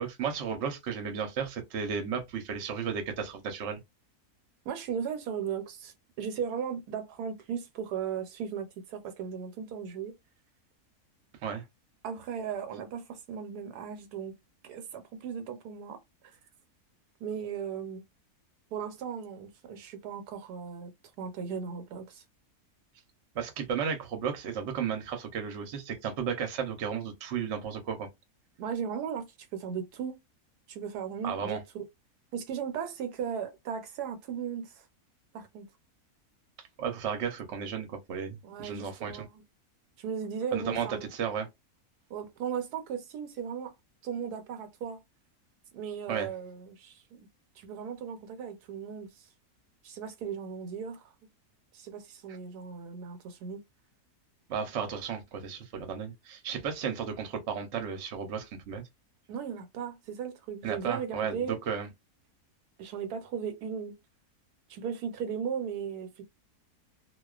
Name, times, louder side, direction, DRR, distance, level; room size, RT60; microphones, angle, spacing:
voice 1, 0.0-3.8 11.4-11.6 23.3-28.1 31.2-31.6 36.8-39.3 40.5-41.5 46.1-46.3 54.5-58.8 60.6-61.9, right 7 dB, 60° right, 0.9 m, -34 dB
voice 2, 4.6-10.1 12.0-14.3 14.6-16.0 17.2-18.0 18.7-20.9 21.2-22.2 28.6-30.2 30.7-31.8 32.3-34.9 35.3-35.7 38.4-39.3 40.0-41.1 42.1-43.7 44.0-45.0 45.7-47.3 47.6-49.3 49.8-51.1 51.7-53.6 59.3-61.6 62.8-64.0 64.7-66.2, right 7 dB, 85° right, 1.1 m, -37 dB
2.3 x 2.3 x 2.3 m
omnidirectional pair, 1.6 m